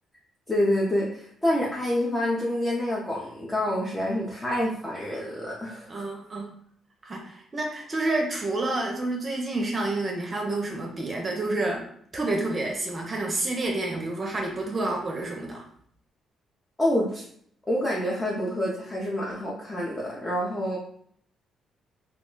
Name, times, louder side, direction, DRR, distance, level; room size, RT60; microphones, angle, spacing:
voice 1, 0.5-6.1 16.8-17.2 17.7-20.8, left 1 dB, 20° left, -5 dB, 0.6 m, -27 dB
voice 2, 5.9-6.5 7.0-11.8 12.1-15.7, right 2 dB, 35° right, 1 dB, 0.6 m, -29 dB
2.3 x 2.2 x 3.7 m, 0.63 s
cardioid pair, 90°, 0 cm